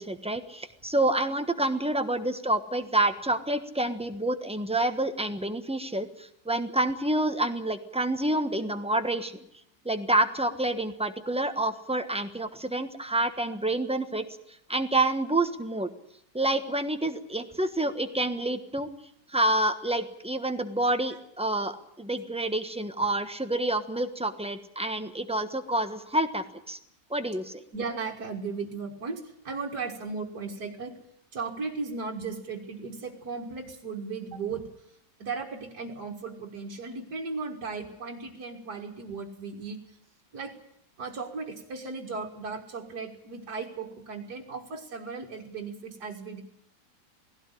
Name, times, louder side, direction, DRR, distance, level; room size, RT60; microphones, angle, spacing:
voice 1, 0.0-9.4 9.8-14.2 14.7-15.9 16.3-18.9 19.3-26.8 27.1-27.6, right 1 dB, 5° right, 8 dB, 1.0 m, -28 dB
voice 2, 27.7-31.0 31.3-34.7 35.2-40.0 40.3-40.6 41.0-46.4, right 4 dB, 60° right, -2 dB, 2.3 m, -36 dB
18.5 x 16.5 x 10.0 m, 0.74 s
omnidirectional pair, 1.9 m